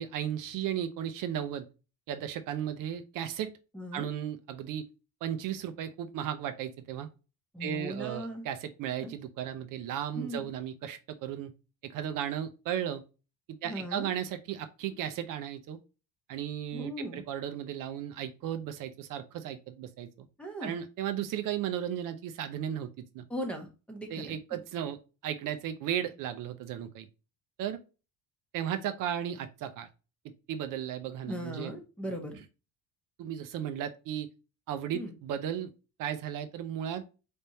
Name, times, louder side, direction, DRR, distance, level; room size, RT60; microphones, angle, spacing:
voice 1, 0.0-1.7 2.1-3.5 3.9-4.8 5.2-7.1 7.6-11.5 11.8-13.0 13.6-15.8 16.3-20.3 20.6-23.2 24.1-27.1 27.6-27.8 28.5-29.9 30.2-31.7 33.2-34.3 34.7-35.7 36.0-37.0, right 10 dB, 55° right, 9 dB, 0.6 m, -35 dB
voice 2, 3.7-4.1 7.5-8.5 9.0-9.1 10.1-10.5 13.6-14.1 16.7-17.3 20.4-20.8 23.3-24.4 31.2-32.4 34.9-35.1, equal, 5° left, 2 dB, 0.8 m, -38 dB
4.3 x 3.4 x 2.6 m, 0.31 s
cardioid pair, 175°, 38 cm